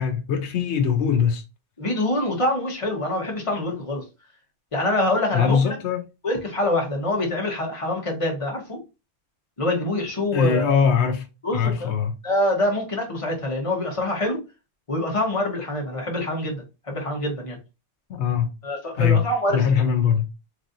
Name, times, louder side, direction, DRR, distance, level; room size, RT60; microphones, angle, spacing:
voice 1, 0.0-1.4 5.3-6.0 10.3-11.3 11.5-12.1 18.1-18.5 19.0-19.2 19.5-20.2, left 7 dB, 85° left, 1.0 m, -21 dB
voice 2, 1.8-4.0 4.7-5.8 6.2-8.8 9.6-10.8 11.4-11.9 12.2-14.4 14.9-17.6 18.6-19.6, left 1 dB, 30° left, 1.3 m, -25 dB
3.9 x 3.2 x 2.6 m
omnidirectional pair, 1.1 m